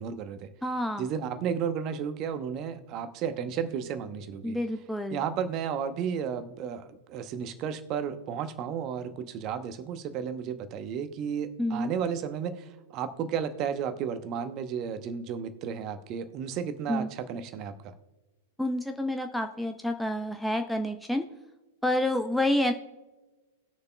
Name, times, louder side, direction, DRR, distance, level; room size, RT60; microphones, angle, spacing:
voice 1, 0.0-0.5 1.0-4.6 5.1-17.9, right 7 dB, 35° right, 11 dB, 0.8 m, -33 dB
voice 2, 0.6-1.0 4.4-5.2 11.6-11.9 16.9-17.1 18.6-21.2 21.8-22.7, left 1 dB, ahead, 6 dB, 0.5 m, -28 dB
19.5 x 6.6 x 2.3 m, 1.2 s
figure-of-eight pair, 100°, 0 cm